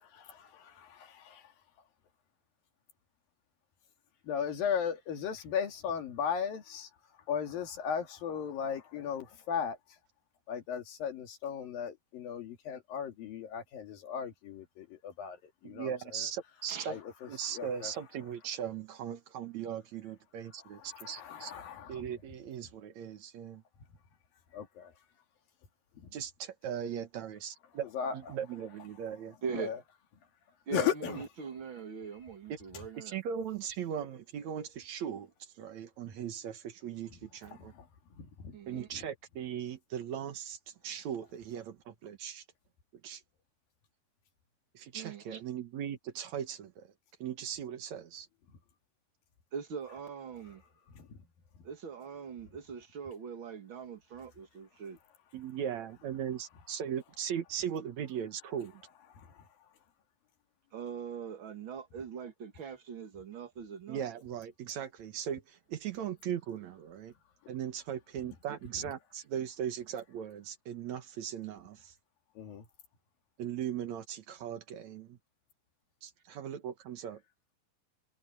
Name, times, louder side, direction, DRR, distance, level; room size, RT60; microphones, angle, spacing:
voice 1, 0.0-1.4 4.2-6.9 7.3-9.8 10.5-16.3 16.9-17.3 17.5-17.9 20.8-22.0 24.5-24.9 26.0-26.1 27.9-28.4 29.6-29.8 30.7-31.2 37.5-37.9 38.2-38.8 50.9-51.2 59.2-59.4 68.3-68.4 72.4-72.7, left 7 dB, 80° left, 4.2 m, -37 dB
voice 2, 15.6-17.0 17.3-21.5 21.9-23.6 26.1-27.9 28.1-29.4 32.5-32.6 33.0-37.7 38.7-42.4 43.0-43.2 44.7-46.9 47.2-48.3 55.3-58.8 63.9-67.1 67.5-71.9 73.4-75.2 76.0-77.2, right 9 dB, 60° right, 2.4 m, -39 dB
voice 3, 29.4-29.7 30.7-33.2 38.5-38.9 44.9-45.4 49.5-50.6 51.6-55.0 60.7-64.0, right 6 dB, 40° right, 2.2 m, -42 dB
omnidirectional pair, 4.0 m